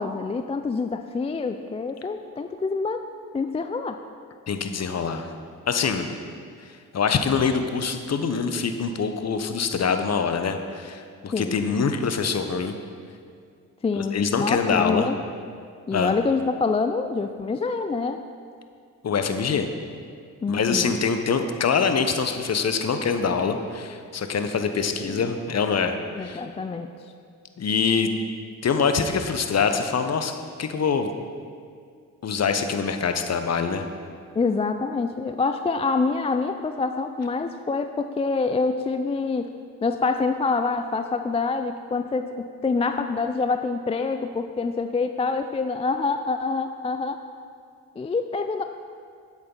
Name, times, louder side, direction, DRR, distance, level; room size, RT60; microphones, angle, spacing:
voice 1, 0.0-3.1 3.3-4.0 11.3-11.5 13.8-15.2 15.9-18.2 20.4-20.9 25.0-25.3 26.2-26.9 34.3-39.5 39.8-47.2 48.0-48.6, left 4 dB, 15° left, 7 dB, 0.4 m, -26 dB
voice 2, 4.5-5.3 5.7-6.1 6.9-12.7 13.9-15.1 15.9-16.1 19.0-19.7 20.5-26.4 27.6-28.1 28.6-31.1 32.2-33.9, left 5 dB, 40° left, 7 dB, 0.9 m, -24 dB
9.6 x 8.3 x 3.9 m, 2.2 s
hypercardioid pair, 45°, 40 cm